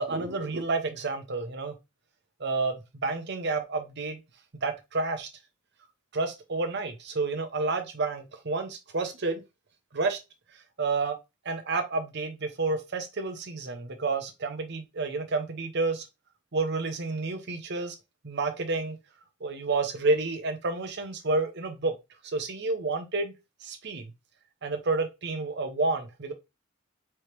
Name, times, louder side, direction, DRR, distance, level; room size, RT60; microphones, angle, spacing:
voice 1, 0.0-1.8 2.4-4.2 4.6-5.3 6.1-9.4 9.9-10.2 10.8-11.2 11.4-16.1 16.5-17.9 18.2-19.0 19.4-22.0 22.2-23.3 23.6-24.1 24.6-26.3, right 3 dB, 55° right, 0.9 m, -30 dB
4.5 x 3.2 x 3.2 m
head